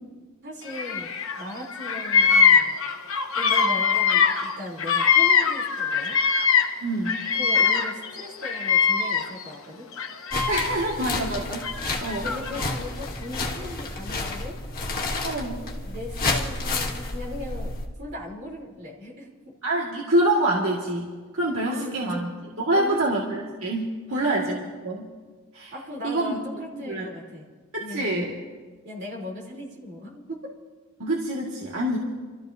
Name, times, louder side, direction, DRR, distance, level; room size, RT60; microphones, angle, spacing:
voice 1, 0.4-2.7 3.3-6.2 7.3-9.8 12.2-14.6 15.7-17.7 18.0-19.3 21.6-22.2 22.7-23.1 24.1-24.4 25.7-27.5 27.8-28.2 28.8-30.4, left 1 dB, 50° right, -3 dB, 3.3 m, -38 dB
Bird vocalization bird call bird song, 0.7-1.4 1.7-6.8 7.0-9.5 9.9-10.9 11.6-12.7, left 6 dB, 65° left, 1.1 m, -22 dB
voice 2, 6.8-7.2 10.5-11.6 12.0-12.3 15.2-15.6 19.6-22.3 22.7-25.1 25.5-25.7 26.0-26.4 26.8-27.1 27.7-28.3 31.0-32.0, right 1 dB, 70° right, -4 dB, 1.8 m, -26 dB
sound 1, 10.3-17.9, left 2 dB, 40° left, 1.8 m, -30 dB
29.5 x 14.0 x 2.7 m, 1.4 s
head